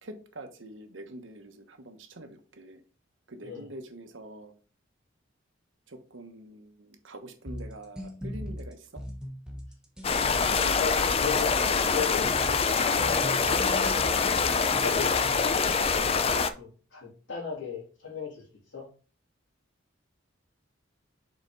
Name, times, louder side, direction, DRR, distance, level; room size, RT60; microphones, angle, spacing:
voice 1, 0.0-2.8 3.3-4.5 5.9-9.0, right 1 dB, 75° right, 6 dB, 1.1 m, -45 dB
sound 1, 7.5-15.5, equal, 5° right, 1.0 m, -39 dB
sound 2, 10.0-16.5, left 5 dB, 30° left, 0.4 m, -25 dB
voice 2, 10.2-12.2 12.6-13.6 14.4-18.4 18.7-18.8, left 6 dB, 70° left, -3 dB, 3.2 m, -37 dB
6.4 x 4.3 x 4.0 m, 0.38 s
head